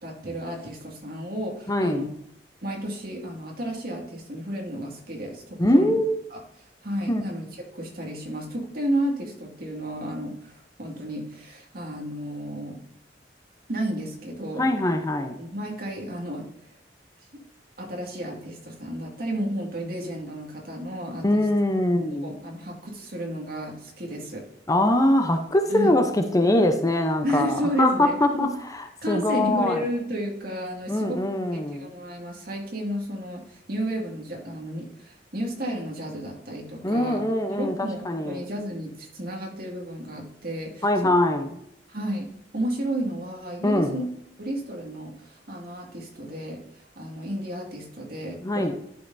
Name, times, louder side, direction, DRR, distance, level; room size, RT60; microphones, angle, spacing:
voice 1, 0.0-2.1 2.6-6.0 6.3-6.4 6.8-7.5 7.7-12.8 13.7-14.7 15.4-16.5 17.3-17.4 17.8-21.5 22.2-24.4 25.7-25.9 27.2-28.5 29.0-31.2 31.8-37.2 37.6-40.9 41.9-42.3 42.5-44.0 44.4-46.6 47.0-48.7, right 1 dB, 55° right, 0 dB, 2.1 m, -32 dB
voice 2, 1.7-2.1 5.6-6.2 7.1-7.3 14.6-15.4 21.2-22.3 24.7-29.8 30.9-31.9 36.8-38.5 40.8-41.6 43.6-44.0 48.4-48.8, left 1 dB, 20° left, 6 dB, 0.7 m, -23 dB
11.5 x 5.7 x 2.6 m, 0.79 s
head